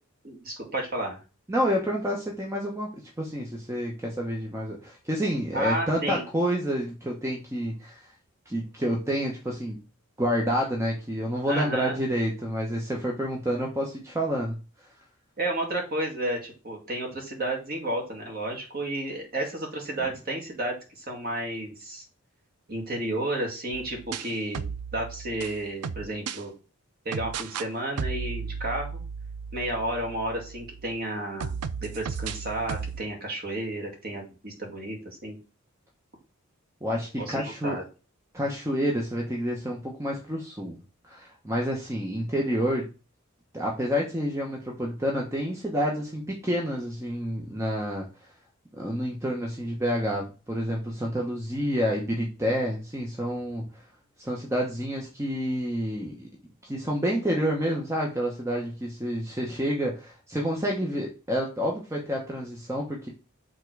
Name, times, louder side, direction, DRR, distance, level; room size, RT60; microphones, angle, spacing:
voice 1, 0.2-1.2 5.5-6.3 11.5-12.0 15.4-22.0 22.7-24.7 24.9-26.5 27.1-29.0 29.5-35.4 37.2-37.8, right 1 dB, 40° right, 1 dB, 2.1 m, -32 dB
voice 2, 1.5-8.1 8.5-9.8 10.2-14.5 36.8-37.8 38.3-40.8 41.1-42.9 43.5-48.1 48.8-53.8 54.2-56.3 56.6-63.1, equal, 15° right, -1 dB, 0.9 m, -29 dB
sound 1, 23.7-26.4 27.1-27.7 28.0-31.0 31.4-33.0, right 6 dB, 90° right, 0.5 m, -35 dB
7.0 x 3.7 x 4.7 m, 0.33 s
head